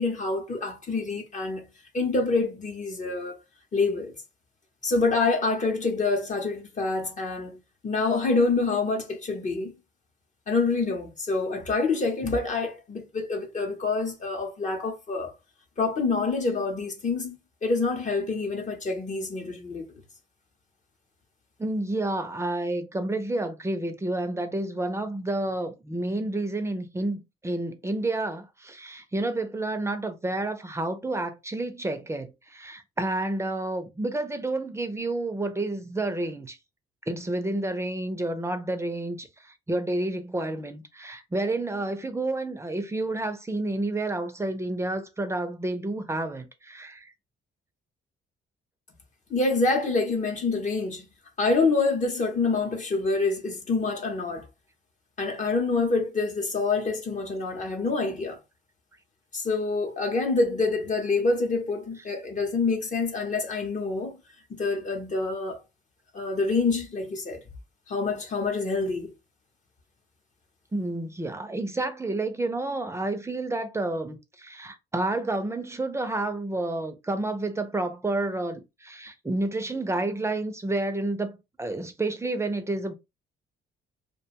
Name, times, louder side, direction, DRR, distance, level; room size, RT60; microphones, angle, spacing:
voice 1, 0.0-1.6 1.9-3.3 3.7-4.1 4.8-7.6 7.8-9.7 10.5-15.3 15.8-17.4 17.6-19.9 49.3-51.1 51.4-54.5 55.2-58.4 59.3-64.1 64.5-65.6 66.1-67.4 67.9-69.1, left 3 dB, 40° left, 0.8 m, -26 dB
voice 2, 21.6-36.6 37.1-47.1 70.7-82.9, right 2 dB, 15° right, 0.5 m, -30 dB
2.4 x 2.2 x 2.8 m
cardioid pair, 90°, 20 cm